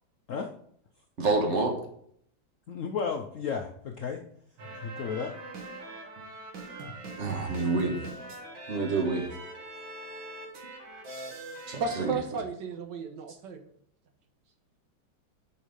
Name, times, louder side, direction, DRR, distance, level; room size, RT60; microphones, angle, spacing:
voice 1, 1.2-1.8 7.2-8.0 8.7-9.3 11.7-12.1, right 3 dB, 40° right, 3 dB, 1.5 m, -27 dB
voice 2, 2.7-4.2 4.8-5.3, left 6 dB, 65° left, 4 dB, 0.8 m, -33 dB
sound 1, 4.6-12.1, right 2 dB, 90° right, 2.2 m, -42 dB
voice 3, 11.8-13.6, right 5 dB, 70° right, 7 dB, 1.5 m, -33 dB
7.2 x 4.7 x 5.2 m, 0.66 s
omnidirectional pair, 2.0 m